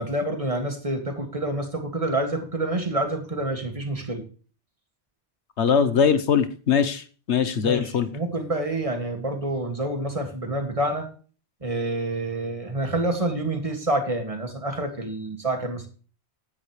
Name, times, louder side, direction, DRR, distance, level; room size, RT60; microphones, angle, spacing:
voice 1, 0.0-4.2 7.6-11.1 11.6-15.9, right 1 dB, 30° right, 4 dB, 2.3 m, -28 dB
voice 2, 5.6-8.1, left 7 dB, 80° left, 11 dB, 1.4 m, -21 dB
15.5 x 10.5 x 3.3 m, 0.39 s
omnidirectional pair, 1.1 m